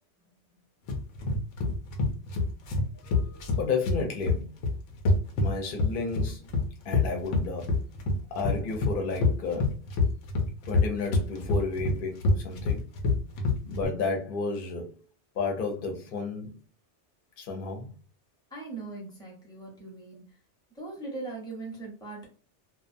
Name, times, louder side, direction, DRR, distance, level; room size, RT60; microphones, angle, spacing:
sound 1, 0.9-13.9, left 3 dB, 85° left, 0.9 m, -26 dB
voice 1, 2.9-4.5 5.4-6.5 6.8-7.8 8.3-9.8 10.7-12.8 13.6-15.0 15.3-16.6 17.4-17.9, left 4 dB, 55° left, 0.8 m, -32 dB
voice 2, 18.5-20.4 20.7-22.3, right 3 dB, 5° left, 0.7 m, -40 dB
2.3 x 2.1 x 2.5 m
omnidirectional pair, 1.2 m